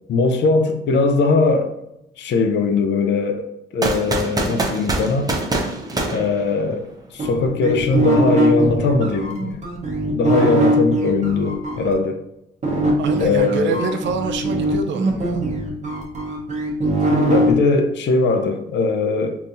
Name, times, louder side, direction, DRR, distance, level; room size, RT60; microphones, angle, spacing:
voice 1, 0.1-1.7 2.2-3.5 3.7-5.3 6.1-6.9 7.1-9.6 10.1-12.2 13.2-13.8 17.3-19.4, left 3 dB, 65° left, 6 dB, 0.6 m, -20 dB
sound 1, 3.8-7.0, right 2 dB, 20° right, 0.6 m, -24 dB
sound 2, 7.2-11.9 12.6-17.5, right 1 dB, 35° right, 1.0 m, -21 dB
voice 2, 13.0-15.4, right 4 dB, 70° right, 5 dB, 0.5 m, -25 dB
3.7 x 2.8 x 2.5 m, 0.84 s
cardioid pair, 90°, 20 cm